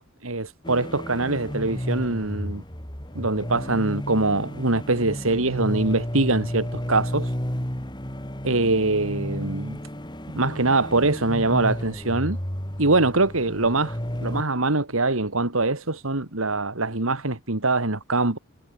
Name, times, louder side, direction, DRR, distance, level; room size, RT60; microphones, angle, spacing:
voice 1, 0.0-2.6 3.1-7.3 8.4-9.8 10.3-12.4 12.8-18.4, right 2 dB, 80° right, 2.5 m, -23 dB
sound 1, 0.6-14.4, equal, 20° left, 3.8 m, -32 dB
head